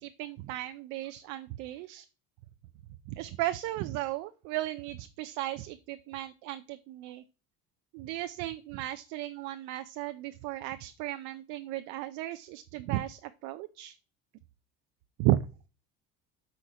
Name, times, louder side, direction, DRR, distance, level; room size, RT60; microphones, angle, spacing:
voice 1, 0.0-2.1 3.1-7.2 7.9-14.0 15.2-15.5, right 15 dB, 75° right, 10 dB, 0.6 m, -35 dB
12.5 x 4.5 x 5.0 m, 0.35 s
cardioid pair, 165°, 29 cm